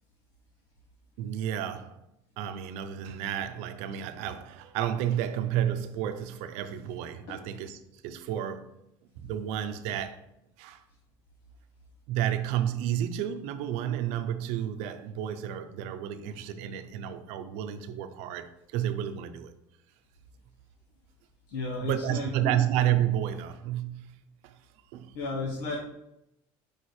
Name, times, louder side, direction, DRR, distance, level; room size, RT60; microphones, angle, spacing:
voice 1, 1.2-2.0 2.4-8.7 9.2-10.2 10.6-10.8 12.1-19.5 21.8-24.6 24.9-25.2, right 10 dB, 75° right, 0.6 m, -31 dB
voice 2, 21.5-22.6 25.1-25.8, left 3 dB, 85° left, 1.2 m, -33 dB
5.0 x 4.3 x 4.8 m
cardioid pair, 155°, 11 cm